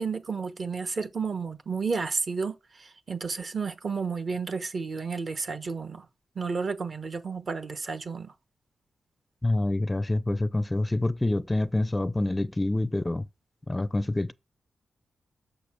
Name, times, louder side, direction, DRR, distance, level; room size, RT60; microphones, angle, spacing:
voice 1, 0.0-6.0 6.3-8.3, right 5 dB, 50° right, 1.0 m, -32 dB
voice 2, 9.4-13.3 13.7-14.3, left 2 dB, 15° left, 0.4 m, -26 dB
6.7 x 6.7 x 6.0 m
wide cardioid pair, 100°, 0 cm